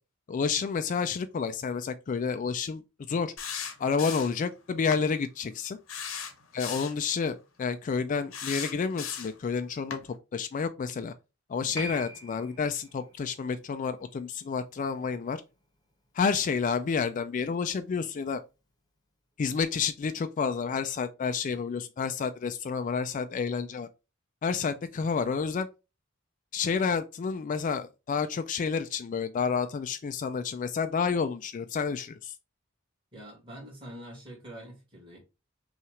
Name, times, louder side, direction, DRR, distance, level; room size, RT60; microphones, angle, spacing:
voice 1, 0.3-2.8 3.1-3.3 3.8-5.8 6.5-10.0 10.3-11.1 11.5-15.4 16.1-18.4 19.4-23.9 24.4-25.7 26.5-32.3, left 5 dB, 40° left, 0.3 m, -30 dB
sound 1, 3.4-4.4 4.9-5.1 5.9-7.0 8.3-9.4 9.9-10.0, left 7 dB, 85° left, 0.9 m, -37 dB
Piano, 11.7-18.7 19.0-19.1, right 1 dB, 20° left, 0.9 m, -47 dB
voice 2, 33.1-35.2, equal, 25° right, 2.1 m, -45 dB
5.6 x 2.4 x 3.1 m
head